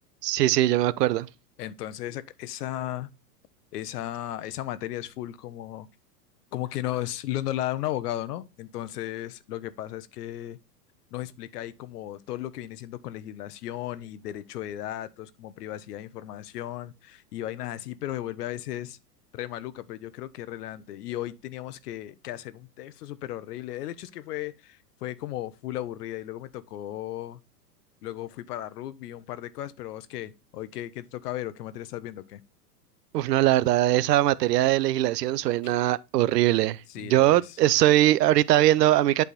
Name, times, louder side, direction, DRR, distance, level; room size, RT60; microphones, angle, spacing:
voice 1, 0.2-1.3 33.1-39.2, right 14 dB, 80° right, 0.6 m, -21 dB
voice 2, 1.6-3.1 3.7-5.9 6.5-10.6 11.1-19.0 19.3-27.4 28.0-32.4 35.6-35.7 36.9-37.6, left 13 dB, 70° left, 0.8 m, -35 dB
8.4 x 3.5 x 4.1 m
hypercardioid pair, 135°, 48 cm